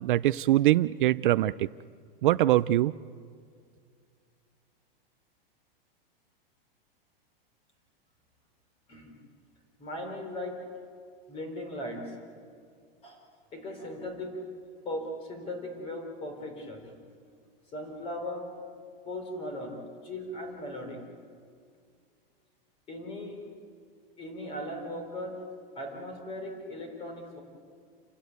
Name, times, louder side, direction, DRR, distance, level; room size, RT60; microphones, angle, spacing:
voice 1, 0.0-1.7 2.2-2.9, right 14 dB, 60° right, 16 dB, 0.5 m, -23 dB
voice 2, 9.8-10.8 11.3-12.2 13.0-13.2 13.5-14.4 14.8-16.9 17.7-18.6 19.0-21.0 22.9-23.5 24.2-25.5 25.8-27.4, left 1 dB, 20° left, 4 dB, 3.8 m, -38 dB
29.5 x 12.5 x 9.4 m, 2.2 s
supercardioid pair, 165°, 29 cm